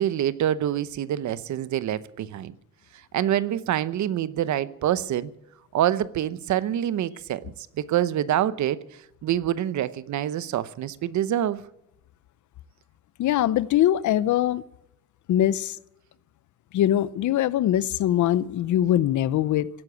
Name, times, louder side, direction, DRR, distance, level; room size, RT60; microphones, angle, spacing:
voice 1, 0.0-2.5 2.9-5.3 5.7-8.8 9.2-11.6, right 11 dB, 70° right, 1.0 m, -26 dB
voice 2, 13.2-14.6 15.3-15.8 16.7-19.7, left 12 dB, 75° left, 0.8 m, -22 dB
17.0 x 9.9 x 7.9 m
cardioid pair, 90°, 30 cm